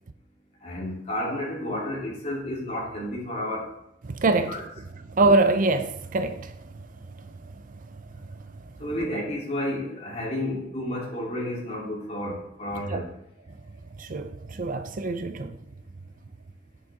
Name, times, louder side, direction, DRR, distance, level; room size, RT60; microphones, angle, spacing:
voice 1, 0.6-3.7 4.4-4.6 8.8-13.1, left 1 dB, 40° left, 3.7 m, -31 dB
voice 2, 4.0-6.8 7.3-7.4 8.2-8.3 12.9-13.0 14.0-15.6, right 3 dB, 45° right, 0.5 m, -25 dB
9.7 x 8.6 x 3.8 m
head